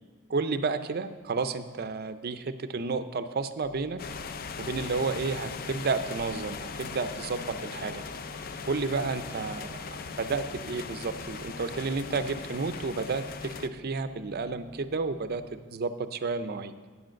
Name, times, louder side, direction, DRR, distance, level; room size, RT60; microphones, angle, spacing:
voice 1, 0.3-4.0 4.6-8.0 8.6-9.8 10.2-15.4 15.7-16.7, right 4 dB, 45° right, 11 dB, 0.5 m, -31 dB
sound 1, 3.6-15.4, right 2 dB, 25° left, 1.7 m, -50 dB
sound 2, 4.0-13.7, left 5 dB, 40° left, 0.4 m, -39 dB
9.7 x 7.7 x 6.3 m, 1.4 s
head